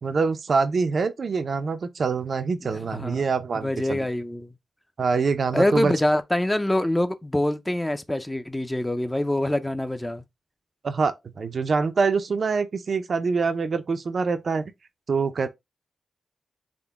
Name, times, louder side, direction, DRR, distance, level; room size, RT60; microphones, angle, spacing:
voice 1, 0.0-4.1 5.0-5.9 10.8-14.7 15.1-15.5, right 4 dB, 55° right, 0.4 m, -25 dB
voice 2, 2.7-3.2 3.6-4.5 5.5-10.2, left 1 dB, 10° left, 0.4 m, -25 dB
3.7 x 2.1 x 3.5 m
cardioid pair, 80°, 0 cm